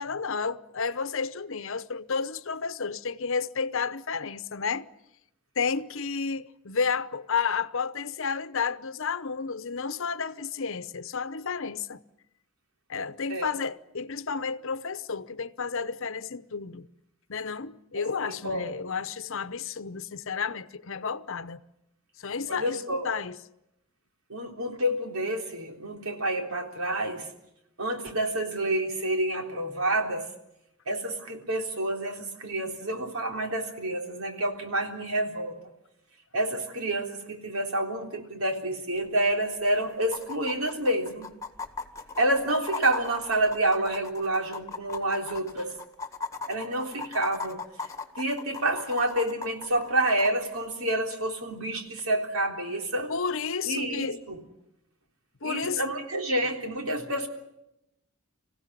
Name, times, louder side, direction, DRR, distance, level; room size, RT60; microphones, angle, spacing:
voice 1, 0.0-4.9 5.6-12.0 12.9-16.9 17.3-21.6 22.2-23.4 53.1-54.2 55.4-55.8, left 5 dB, 65° left, 0.9 m, -31 dB
voice 2, 17.9-18.7 22.5-23.1 24.3-27.3 27.8-30.3 30.9-35.6 36.3-41.3 42.2-45.7 46.5-47.6 48.2-53.1 53.7-54.4 55.4-57.3, right 1 dB, 90° right, 3.6 m, -28 dB
sound 1, 39.0-39.1 39.3-39.4 40.0-50.3 52.0-52.1, left 4 dB, 15° left, 1.9 m, -38 dB
26.0 x 16.0 x 9.9 m
head